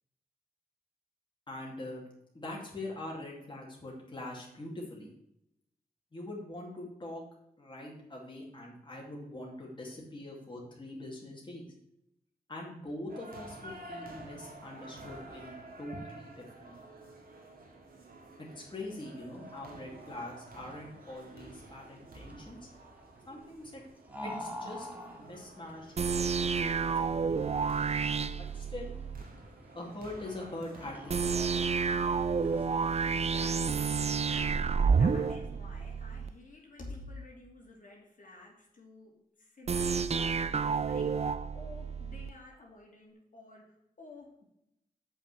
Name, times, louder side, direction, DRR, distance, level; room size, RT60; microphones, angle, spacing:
voice 1, 1.5-2.0 2.3-5.1 6.1-7.2 7.6-11.6 12.5-16.7 18.4-22.6 23.3-23.8 24.2-24.9 25.1-27.5 28.4-28.9 29.7-31.7, left 1 dB, 30° left, -3 dB, 2.6 m, -43 dB
sound 1, 13.1-31.7, right 2 dB, 70° right, 2.1 m, -51 dB
sound 2, 19.2-32.7, left 1 dB, 10° right, 1.7 m, -49 dB
sound 3, 26.0-29.2 31.1-36.3 39.7-42.3, right 5 dB, 45° right, 0.5 m, -30 dB
voice 2, 33.0-44.4, left 2 dB, 60° left, -2 dB, 2.7 m, -51 dB
7.6 x 5.7 x 6.1 m, 0.80 s
wide cardioid pair, 85°, 16 cm